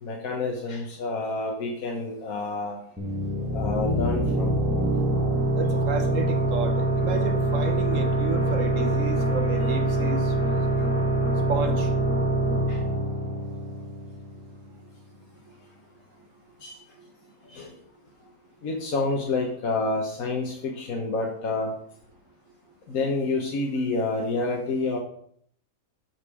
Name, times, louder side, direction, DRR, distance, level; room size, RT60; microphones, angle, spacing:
voice 1, 0.0-2.8 3.5-4.6 12.7-12.8 16.6-16.7 17.5-17.7 18.6-21.7 22.9-25.0, left 3 dB, 75° left, -1 dB, 1.5 m, -28 dB
sound 1, 3.0-14.4, right 1 dB, 10° right, 2.2 m, -25 dB
voice 2, 5.5-10.7 11.5-11.9 17.0-17.1, right 4 dB, 65° right, 6 dB, 1.3 m, -32 dB
7.2 x 5.4 x 4.8 m, 0.64 s
omnidirectional pair, 1.5 m